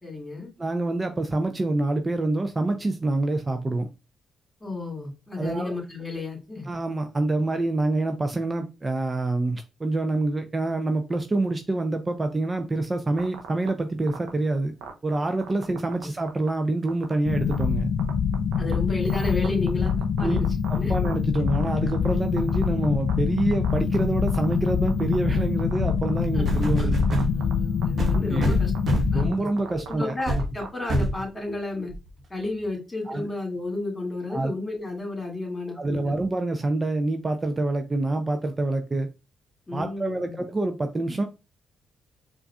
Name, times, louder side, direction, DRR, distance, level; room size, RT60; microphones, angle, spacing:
voice 1, 0.0-0.5 4.6-6.7 18.6-20.5 20.8-20.9 26.3-26.4 26.8-26.9 27.3-31.9 32.3-36.1 39.7-40.4, left 2 dB, 20° left, 2.1 m, -32 dB
voice 2, 0.6-3.9 5.4-5.7 6.7-14.7 15.0-17.9 20.2-20.4 20.7-26.9 28.3-28.6 29.1-30.2 33.1-33.3 34.3-34.5 35.8-39.1 39.7-41.2, right 2 dB, 30° right, 0.5 m, -26 dB
sound 1, 13.2-13.7 14.1-14.3 14.8-16.0 16.3-16.5 16.9-17.1 17.5-17.6 18.0-18.7 19.1-22.1 22.4-23.1 23.4-24.0 24.3-25.1 25.6-26.2 26.5-26.7 27.0-27.5 27.8-27.9 28.1-28.4 28.7-28.9 29.2-30.7, right 9 dB, 80° right, 0.6 m, -38 dB
sound 2, 17.2-29.3, left 7 dB, 70° left, 0.4 m, -25 dB
sound 3, 26.5-27.3 28.0-29.2 29.7-29.9 30.3-30.5 30.9-31.2 31.9-32.0, equal, 50° right, 0.9 m, -25 dB
4.6 x 2.5 x 2.3 m
hypercardioid pair, 50°, 0 cm